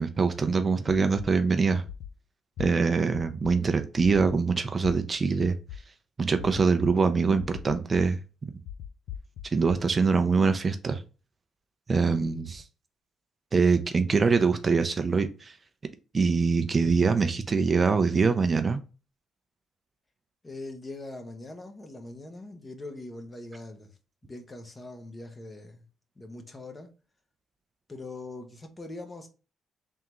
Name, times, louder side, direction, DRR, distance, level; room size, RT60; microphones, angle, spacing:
voice 1, 0.0-1.8 2.6-5.6 6.2-8.2 9.5-11.0 11.9-12.6 13.5-15.6 16.1-18.8, right 4 dB, 35° right, 0.5 m, -24 dB
sound 1, 0.9-1.3 1.9-2.1 2.6-2.7 3.1-3.5 4.0-4.4 4.8-4.9 5.4-5.8 6.4-6.9 7.4-8.0 8.7-9.7, left 10 dB, 80° left, 0.4 m, -39 dB
voice 2, 20.4-23.9 24.2-25.9 26.2-26.9 27.9-29.3, left 2 dB, 25° left, 1.0 m, -42 dB
3.6 x 3.3 x 3.0 m
cardioid pair, 90°, 0 cm